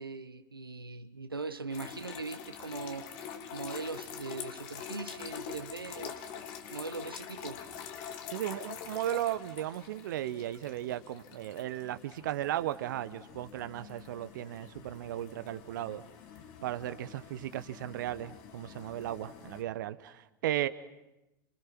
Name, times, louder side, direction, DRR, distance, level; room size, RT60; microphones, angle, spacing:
voice 1, 0.0-3.1 3.5-6.1 6.7-7.6, right 3 dB, 85° right, 1.1 m, -40 dB
sound 1, 1.7-19.6, left 8 dB, 50° left, 2.8 m, -46 dB
voice 2, 8.3-16.0 16.6-20.7, right 13 dB, 60° right, 1.0 m, -36 dB
30.0 x 25.5 x 6.1 m
figure-of-eight pair, 85°, 12 cm